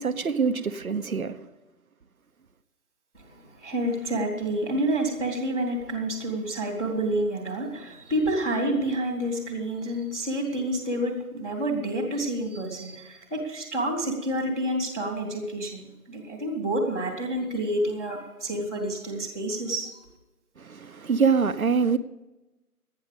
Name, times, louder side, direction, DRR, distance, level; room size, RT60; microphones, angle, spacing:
voice 1, 0.0-1.4 20.6-22.0, right 5 dB, 65° right, 1.0 m, -24 dB
voice 2, 3.1-20.0, right 1 dB, ahead, 0.9 m, -29 dB
12.5 x 9.5 x 6.9 m
figure-of-eight pair, 155°, 46 cm